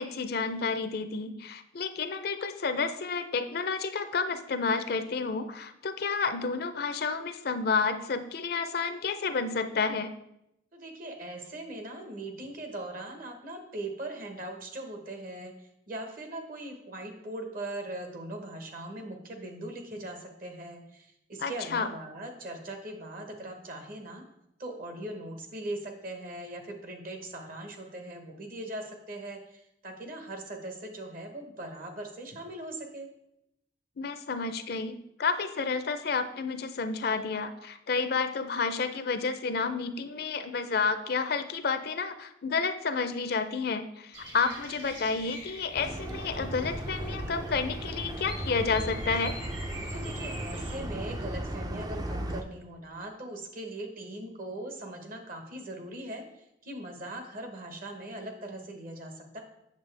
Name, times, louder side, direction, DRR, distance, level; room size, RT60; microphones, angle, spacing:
voice 1, 0.0-10.1 21.4-21.9 34.0-49.3, left 4 dB, 55° left, 10 dB, 0.5 m, -30 dB
voice 2, 10.7-24.2 24.6-33.1 49.9-56.2 56.6-59.4, right 1 dB, 50° right, 4 dB, 1.2 m, -40 dB
Bird vocalization bird call bird song, 44.1-50.8, right 1 dB, 85° right, 2.3 m, -45 dB
sound 1, 45.8-52.4, right 1 dB, 20° right, 0.4 m, -36 dB
8.1 x 6.6 x 3.3 m, 0.81 s
head